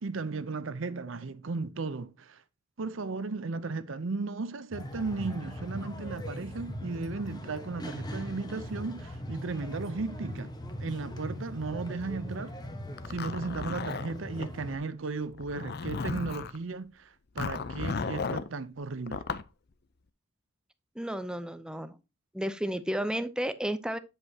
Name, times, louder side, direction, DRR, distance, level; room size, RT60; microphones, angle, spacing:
voice 1, 0.0-2.4 2.8-10.5 10.8-12.5 13.1-19.2, right 3 dB, 70° right, 0.7 m, -35 dB
sound 1, 4.7-14.8, equal, 20° left, 1.1 m, -40 dB
Zipper (clothing), 13.0-14.5 15.3-16.6 17.4-18.5 19.1-19.5, left 4 dB, 55° left, 0.6 m, -35 dB
voice 2, 20.9-22.0 22.3-24.0, equal, 5° right, 0.6 m, -32 dB
8.4 x 7.8 x 2.8 m
head